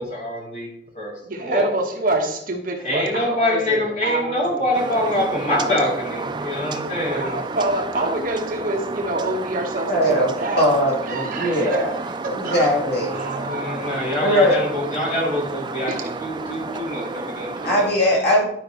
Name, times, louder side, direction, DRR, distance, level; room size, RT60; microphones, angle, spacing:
voice 1, 0.0-1.7 2.8-7.4 13.1-17.9, left 1 dB, 40° left, -4 dB, 2.7 m, -25 dB
voice 2, 1.2-5.0 7.0-10.7 11.1-12.0 12.2-12.7 13.1-14.0 15.9-16.1, right 2 dB, 50° right, 1 dB, 1.2 m, -27 dB
sound 1, 4.7-17.9, right 3 dB, 25° right, 0.4 m, -31 dB
voice 3, 9.8-10.3 10.6-11.9 12.3-13.1 14.2-14.6 17.6-18.4, equal, 65° left, -3 dB, 2.5 m, -19 dB
11.5 x 5.2 x 3.0 m, 0.73 s
head